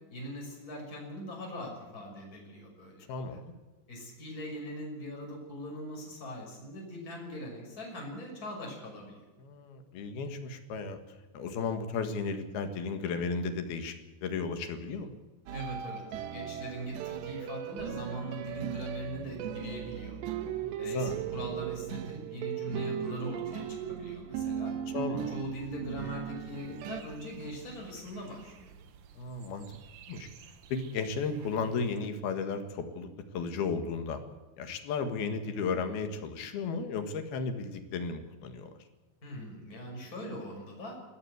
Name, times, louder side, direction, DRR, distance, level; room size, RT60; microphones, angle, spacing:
voice 1, 0.1-3.1 3.9-9.2 15.5-16.0 16.3-20.2 20.8-24.7 25.3-28.7 39.2-41.0, equal, 20° left, -1 dB, 6.2 m, -41 dB
voice 2, 3.1-3.5 9.4-11.0 11.3-14.0 14.2-15.2 20.4-21.2 24.9-25.4 29.2-29.8 30.1-30.3 30.7-34.2 34.6-38.7, left 4 dB, 65° left, 7 dB, 3.5 m, -34 dB
sound 1, 15.5-27.0, right 9 dB, 85° right, 3.4 m, -37 dB
sound 2, 26.5-32.0, right 6 dB, 60° right, 2.6 m, -54 dB
21.5 x 15.5 x 8.1 m, 1.2 s
omnidirectional pair, 4.9 m